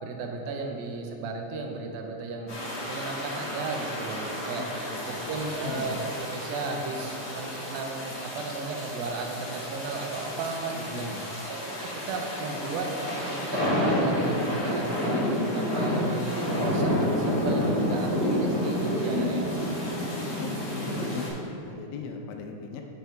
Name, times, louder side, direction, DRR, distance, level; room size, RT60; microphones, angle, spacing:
voice 1, 0.0-2.6 2.8-4.6 5.1-11.1 11.5-19.5, right 3 dB, 90° right, 2 dB, 2.5 m, -34 dB
sound 1, 2.5-21.3, left 1 dB, 50° left, 1.0 m, -30 dB
voice 2, 4.6-5.3 5.7-6.0 10.9-11.3 20.4-22.8, left 5 dB, 80° left, 3 dB, 2.3 m, -39 dB
7.1 x 5.3 x 4.5 m, 2.8 s
omnidirectional pair, 4.1 m